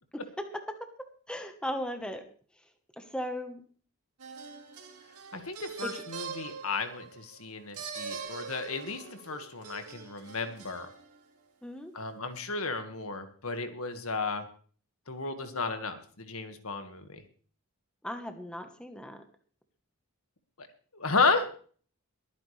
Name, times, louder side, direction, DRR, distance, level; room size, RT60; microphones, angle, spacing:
voice 1, 1.3-2.2 3.0-3.6 5.8-5.9 11.6-11.9 18.0-19.2, equal, 5° left, 6 dB, 1.2 m, -36 dB
sound 1, 4.2-11.2, right 5 dB, 90° right, 2.3 m, -43 dB
voice 2, 5.3-10.9 11.9-14.4 15.1-17.2 20.6-20.7 20.9-21.5, left 4 dB, 75° left, 7 dB, 1.8 m, -33 dB
22.5 x 9.5 x 3.3 m, 0.43 s
head